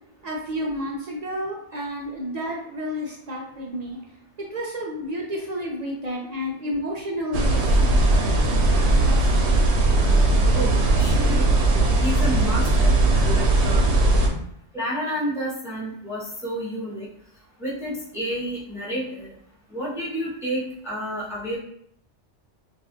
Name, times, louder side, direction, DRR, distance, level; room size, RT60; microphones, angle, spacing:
voice 1, 0.2-4.2 4.5-8.2 9.0-9.6 14.3-14.4, equal, 50° right, -2 dB, 0.5 m, -31 dB
sound 1, 7.3-14.3, right 2 dB, 70° right, 0.9 m, -19 dB
voice 2, 10.5-11.6 11.9-13.8 14.7-17.1 17.6-19.3 19.7-21.6, right 1 dB, 5° right, -7 dB, 0.7 m, -30 dB
2.5 x 2.5 x 3.5 m, 0.70 s
omnidirectional pair, 1.2 m